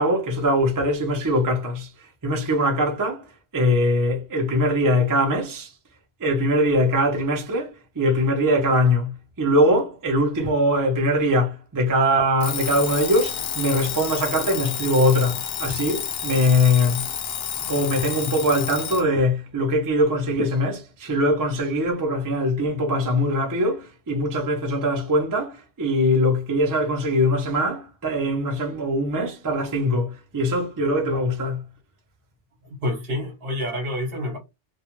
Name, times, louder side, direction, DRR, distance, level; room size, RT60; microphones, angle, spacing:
voice 1, 0.0-5.7 6.2-17.0 17.6-31.6, left 1 dB, 25° right, 0.5 m, -22 dB
Alarm, 12.4-19.1, left 8 dB, 70° left, 0.8 m, -30 dB
voice 2, 32.6-34.4, left 1 dB, 60° right, 1.0 m, -28 dB
2.3 x 2.2 x 2.9 m
omnidirectional pair, 1.1 m